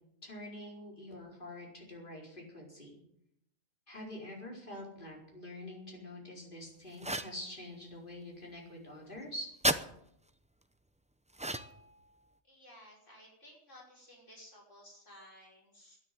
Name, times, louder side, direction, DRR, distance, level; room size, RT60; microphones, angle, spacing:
voice 1, 0.2-3.0 3.9-9.5, left 1 dB, 40° left, -2 dB, 4.9 m, -46 dB
sound 1, 7.0-7.4 9.6-9.8 11.3-11.9, right 1 dB, 10° right, 0.4 m, -32 dB
voice 2, 12.5-16.0, equal, 65° left, -3 dB, 5.8 m, -56 dB
12.5 x 10.5 x 9.5 m, 0.75 s
omnidirectional pair, 1.4 m